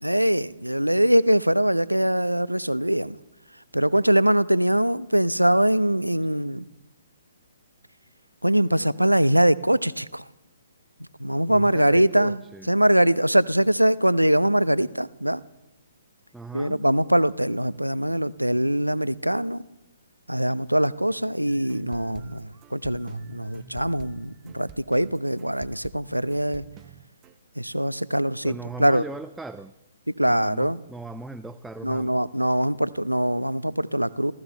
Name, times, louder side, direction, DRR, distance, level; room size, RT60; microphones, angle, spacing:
voice 1, 0.0-3.2 3.7-6.7 8.4-10.2 11.2-12.4 12.7-15.4 16.5-19.6 20.3-26.6 27.6-29.0 30.2-30.8 31.8-34.3, right 1 dB, 90° right, 19 dB, 0.6 m, -22 dB
voice 2, 11.5-12.7 16.3-16.8 28.4-29.7 30.2-32.2, right 2 dB, 5° right, 8 dB, 0.5 m, -39 dB
sound 1, 21.5-27.3, right 7 dB, 20° right, 0.8 m, -47 dB
29.5 x 14.5 x 3.4 m, 0.98 s
figure-of-eight pair, 125°, 0 cm